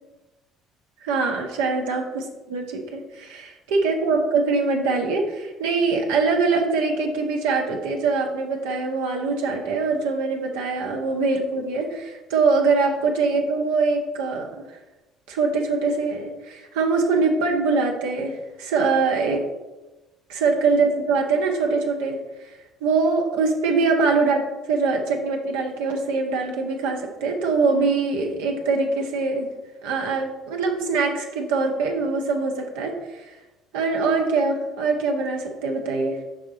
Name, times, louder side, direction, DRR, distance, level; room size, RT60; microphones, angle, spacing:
voice 1, 1.0-14.6 15.3-19.4 20.3-22.2 22.4-22.5 22.8-24.4 24.7-29.5 29.8-33.3 33.7-36.2, right 4 dB, 80° right, 1 dB, 1.2 m, -23 dB
6.7 x 5.1 x 3.8 m, 1.1 s
hypercardioid pair, 60°, 0 cm